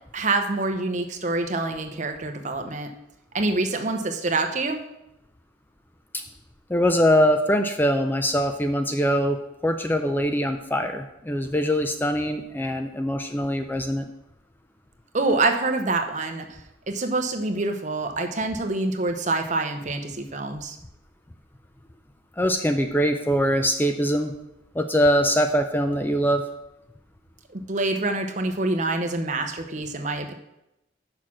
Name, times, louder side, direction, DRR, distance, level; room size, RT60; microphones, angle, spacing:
voice 1, 0.1-2.9 3.3-4.8 15.1-16.5 16.9-20.8 27.5-30.3, right 2 dB, 40° right, 6 dB, 0.8 m, -26 dB
voice 2, 6.7-14.0 22.4-24.3 24.7-26.4, equal, 10° left, 7 dB, 0.4 m, -23 dB
6.5 x 5.9 x 6.2 m, 0.88 s
head